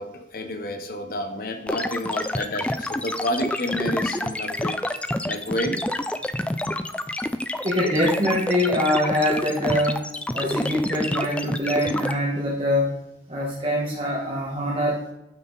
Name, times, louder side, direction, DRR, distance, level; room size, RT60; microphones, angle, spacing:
voice 1, 0.0-5.8, left 1 dB, 55° left, 6 dB, 1.0 m, -30 dB
sound 1, 1.7-12.1, left 1 dB, 5° left, 0.3 m, -28 dB
voice 2, 7.6-12.9 13.3-15.0, left 1 dB, 30° right, -3 dB, 1.2 m, -24 dB
9.1 x 5.6 x 4.1 m, 0.90 s
head